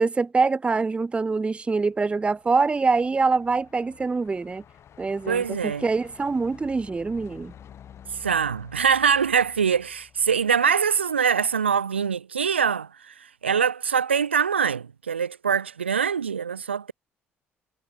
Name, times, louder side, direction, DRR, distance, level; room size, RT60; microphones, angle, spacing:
voice 1, 0.0-4.6 5.0-7.5, right 4 dB, 20° right, 0.4 m, -24 dB
Truck, 1.5-10.9, left 9 dB, 50° left, 7.6 m, -50 dB
voice 2, 5.3-5.8 8.2-13.1 13.4-16.9, right 7 dB, 85° right, 0.7 m, -23 dB
figure-of-eight pair, 50°, 6 cm